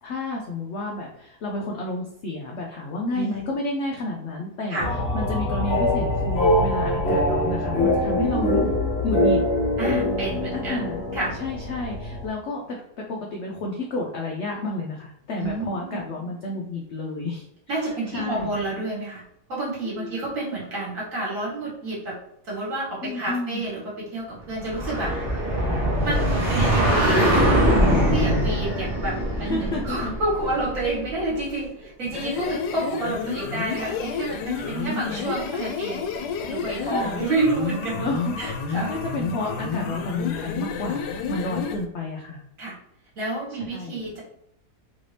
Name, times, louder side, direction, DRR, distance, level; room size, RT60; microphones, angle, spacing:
voice 1, 0.0-4.8 5.1-8.6 9.0-9.4 10.5-11.0 11.4-18.6 19.8-20.2 23.0-23.6 29.4-30.1 32.3-32.5 34.7-35.3 36.8-37.3 38.0-42.4 43.5-44.0, left 2 dB, 70° left, 0 dB, 0.6 m, -31 dB
sound 1, 4.8-12.3, left 1 dB, 50° left, 1.2 m, -23 dB
voice 2, 8.1-8.7 9.8-10.8 11.1-11.3 15.4-16.0 17.7-19.2 19.5-22.2 22.4-25.1 26.0-27.3 28.1-36.1 36.5-38.0 38.4-38.9 42.6-42.7 43.2-44.2, right 2 dB, 55° right, -5 dB, 1.7 m, -29 dB
sound 2, 24.6-31.2, equal, 25° right, 0.7 m, -22 dB
sound 3, 32.0-41.8, left 5 dB, 85° left, 1.2 m, -30 dB
3.3 x 2.7 x 3.2 m, 0.80 s
omnidirectional pair, 1.7 m